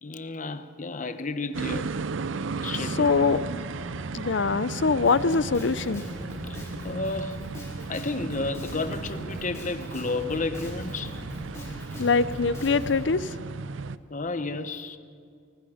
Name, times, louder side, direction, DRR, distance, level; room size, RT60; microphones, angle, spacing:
voice 1, 0.0-1.9 2.6-3.1 6.5-6.6 6.8-7.4 7.9-11.2 14.1-15.0, left 3 dB, 40° left, 1.0 m, -32 dB
sound 1, 1.5-14.0, right 4 dB, 85° right, 0.6 m, -35 dB
sound 2, 2.3-7.4, left 1 dB, 20° right, 1.9 m, -42 dB
voice 2, 3.0-3.4 4.1-6.0 12.0-13.3, left 4 dB, 65° left, 0.6 m, -23 dB
Drum kit, 5.0-13.0, left 1 dB, 15° left, 5.4 m, -40 dB
30.0 x 19.5 x 5.1 m
head